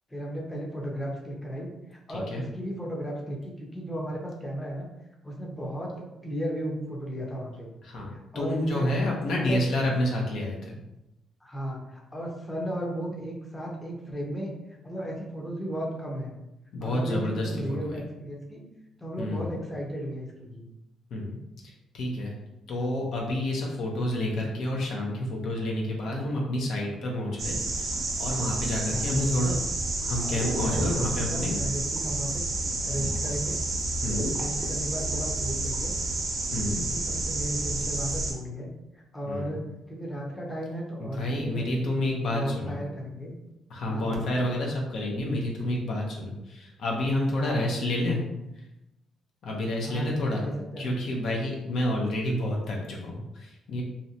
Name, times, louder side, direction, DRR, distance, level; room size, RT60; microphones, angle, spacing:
voice 1, 0.1-4.9 5.2-7.7 8.1-9.6 11.4-14.5 14.8-16.3 16.8-18.6 19.0-20.7 22.8-22.9 28.9-29.5 30.2-32.5 32.8-33.6 34.4-36.0 36.8-38.7 38.9-39.6 39.9-41.9 42.2-43.3 43.9-44.2 47.4-47.7 49.8-51.0, equal, 10° left, -2 dB, 0.6 m, -35 dB
voice 2, 7.9-10.8 16.7-17.9 19.2-19.5 21.1-21.4 21.9-22.3 22.7-27.9 28.2-29.5 30.0-31.5 33.0-33.1 34.0-34.3 36.5-36.8 39.3-39.6 41.0-42.8 43.7-48.2 49.4-50.4 50.8-53.8, left 1 dB, 70° left, -1 dB, 0.6 m, -29 dB
sound 1, 27.4-38.3, right 2 dB, 50° right, 0.6 m, -30 dB
2.6 x 2.1 x 2.6 m, 0.91 s
cardioid pair, 90°, 0 cm